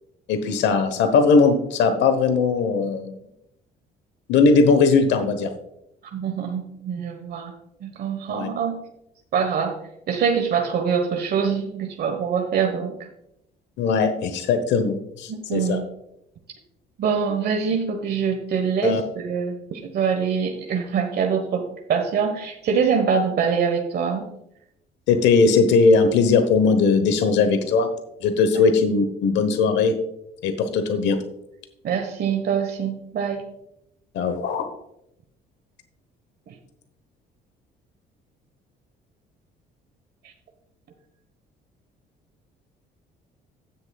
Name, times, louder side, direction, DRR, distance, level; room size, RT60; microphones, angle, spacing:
voice 1, 0.3-3.1 4.3-5.5 8.3-8.5 13.8-15.8 18.8-19.0 25.1-27.9 28.2-30.0 30.4-31.2 34.1-34.7, left 4 dB, 75° left, 8 dB, 1.0 m, -19 dB
voice 2, 6.1-7.5 7.8-8.8 9.3-9.8 10.1-13.0 15.3-15.8 17.0-24.4 28.5-28.7 31.8-33.4 36.5-36.6 40.2-40.3, right 6 dB, 60° right, 3 dB, 1.2 m, -24 dB
15.0 x 6.7 x 2.3 m, 0.81 s
cardioid pair, 95°, 19 cm